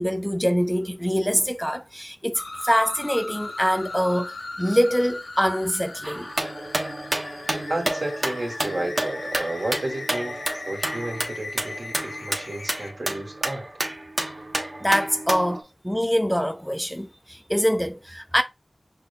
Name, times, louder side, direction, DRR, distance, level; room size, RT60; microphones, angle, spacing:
voice 1, 0.0-6.3 14.8-18.4, equal, 5° left, 0.4 m, -24 dB
sound 1, 2.3-12.9, left 2 dB, 80° left, 0.6 m, -38 dB
sound 2, 6.0-15.6, right 1 dB, 40° right, 1.1 m, -30 dB
voice 2, 7.7-13.7, right 1 dB, 65° right, 1.8 m, -32 dB
5.6 x 2.2 x 3.5 m
wide cardioid pair, 70°, 0 cm